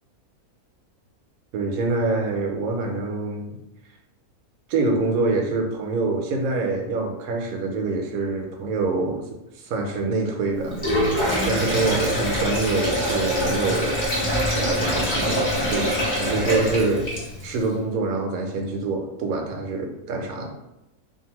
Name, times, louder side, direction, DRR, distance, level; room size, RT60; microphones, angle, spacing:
voice 1, 1.5-3.6 4.7-9.3 9.6-10.8 11.4-14.1 14.4-17.1 17.4-20.5, right 3 dB, 75° right, 3 dB, 1.0 m, -25 dB
Sink (filling or washing), 10.7-17.5, equal, 25° left, 0.7 m, -24 dB
2.6 x 2.5 x 2.9 m, 0.92 s
omnidirectional pair, 1.5 m